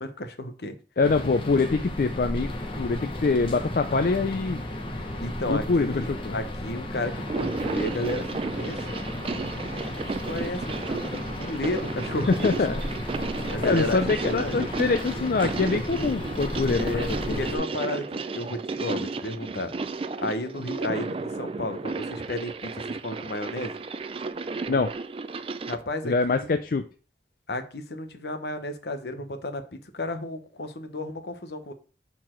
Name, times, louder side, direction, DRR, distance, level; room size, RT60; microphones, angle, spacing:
voice 1, 0.0-0.8 3.9-4.0 5.2-9.0 9.7-12.6 13.5-14.0 14.3-14.6 16.8-18.1 18.3-19.7 20.2-23.8 25.7-26.5 27.5-31.7, left 1 dB, 70° left, 7 dB, 0.9 m, -33 dB
voice 2, 1.0-2.5 2.8-4.6 5.5-6.4 12.3-12.8 13.6-16.9 17.3-17.4 24.7-24.9 26.0-26.8, left 4 dB, 55° left, 8 dB, 0.4 m, -24 dB
sound 1, 1.0-17.6, left 1 dB, 30° left, 0.9 m, -34 dB
sound 2, 7.2-25.8, right 3 dB, 30° right, 0.3 m, -33 dB
6.6 x 4.2 x 4.4 m, 0.37 s
head